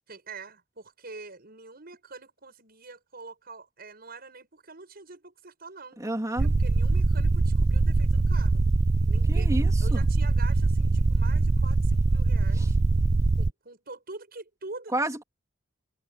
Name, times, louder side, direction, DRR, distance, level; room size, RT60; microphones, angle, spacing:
voice 1, 0.1-6.0 6.4-8.6 9.0-9.5 9.8-12.8 13.4-15.0, right 3 dB, 50° right, 6.8 m, -45 dB
voice 2, 6.0-6.5 9.3-10.1 12.6-12.7 14.9-15.2, right 1 dB, 15° right, 3.2 m, -30 dB
sound 1, 6.4-13.5, right 3 dB, 35° right, 0.5 m, -23 dB
head